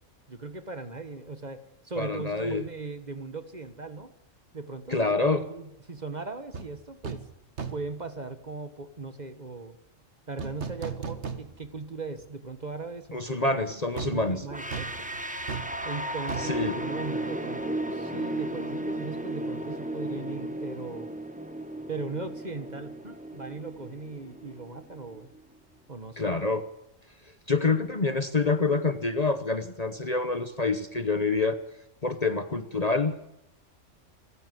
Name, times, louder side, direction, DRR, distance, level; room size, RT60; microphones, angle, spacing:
voice 1, 0.3-4.1 4.5-7.3 7.7-9.8 10.3-13.8 14.1-15.1 15.8-21.1 21.9-25.3 25.9-26.4, right 3 dB, 35° right, 10 dB, 1.5 m, -39 dB
voice 2, 2.0-2.6 4.9-5.4 13.1-14.4 16.4-16.8 26.2-26.6 27.5-31.6 32.0-33.3, left 3 dB, 35° left, 10 dB, 1.0 m, -27 dB
sound 1, 6.5-6.7 7.0-7.3 7.6-8.0 10.4-11.8 12.2-12.3 14.0-17.6 17.9-18.0, right 5 dB, 60° right, 1.9 m, -37 dB
sound 2, 14.5-25.4, right 1 dB, 5° right, 1.3 m, -35 dB
27.0 x 14.5 x 7.7 m, 0.88 s
omnidirectional pair, 1.3 m